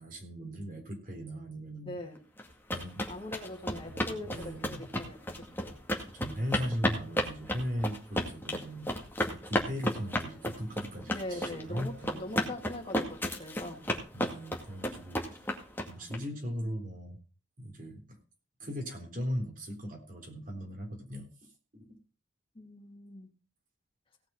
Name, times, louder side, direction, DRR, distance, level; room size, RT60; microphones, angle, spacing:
voice 1, 0.0-2.0 2.7-3.1 3.9-4.9 6.1-8.9 9.3-12.2 14.1-15.4 15.9-17.2 17.6-18.2 18.6-22.0, equal, 45° right, 3 dB, 3.7 m, -38 dB
voice 2, 1.8-2.2 3.1-5.8 11.1-13.8 22.5-23.3, left 1 dB, 25° left, 2 dB, 2.7 m, -42 dB
sound 1, 2.4-16.2, left 1 dB, 10° left, 2.1 m, -32 dB
17.5 x 6.0 x 5.6 m, 0.34 s
head